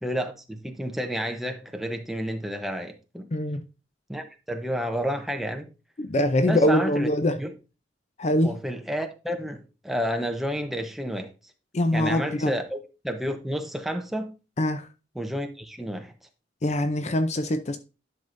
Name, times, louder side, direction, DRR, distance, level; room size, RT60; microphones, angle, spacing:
voice 1, 0.0-3.3 4.1-5.7 6.5-7.1 7.4-7.5 8.4-11.3 11.9-14.3 15.1-16.1, equal, ahead, 0.8 m, -30 dB
voice 2, 3.3-3.6 6.0-7.4 8.2-8.6 11.7-12.5 14.6-14.9 16.6-17.8, left 1 dB, 35° left, 0.5 m, -23 dB
10.5 x 6.0 x 2.6 m
head